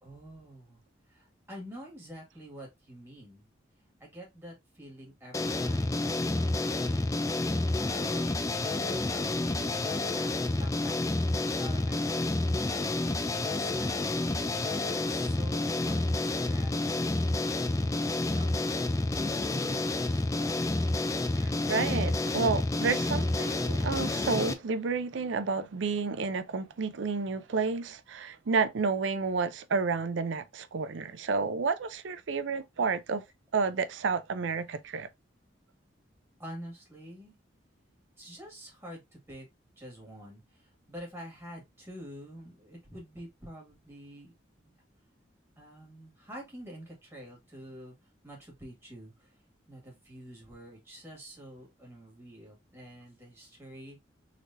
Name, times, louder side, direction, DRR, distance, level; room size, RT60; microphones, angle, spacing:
voice 1, 0.0-3.4 4.0-7.1 7.4-8.2 8.8-14.0 14.3-17.4 18.3-18.9 19.2-20.7 36.4-37.4 38.2-39.5 39.8-44.7 45.6-47.9 48.2-49.4 49.7-54.0, equal, 15° right, 1.8 m, -48 dB
sound 1, 5.3-24.5, left 2 dB, 15° left, 0.3 m, -29 dB
voice 2, 17.8-18.1 21.4-33.2 33.5-35.1, right 4 dB, 80° right, 0.5 m, -30 dB
4.1 x 3.2 x 2.6 m
head